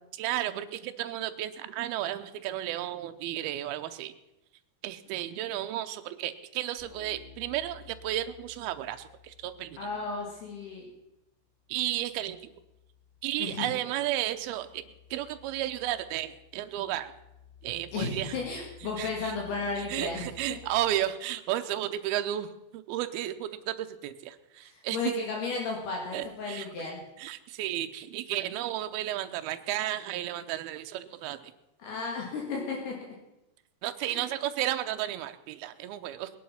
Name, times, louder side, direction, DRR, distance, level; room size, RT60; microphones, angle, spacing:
voice 1, 0.2-4.1 4.8-9.8 11.7-12.5 13.2-14.8 15.1-17.1 17.6-18.4 19.0-19.3 19.9-25.0 26.1-26.7 27.2-31.5 33.8-36.3, right 13 dB, 75° right, 9 dB, 2.4 m, -33 dB
sound 1, 6.8-11.1 11.4-21.0, left 8 dB, 15° left, 1.6 m, -55 dB
voice 2, 9.8-10.9 13.4-13.7 17.9-20.2 24.6-27.0 31.8-33.0 34.0-34.3, left 4 dB, 70° left, -1 dB, 3.8 m, -34 dB
20.0 x 10.5 x 5.7 m, 0.93 s
omnidirectional pair, 5.0 m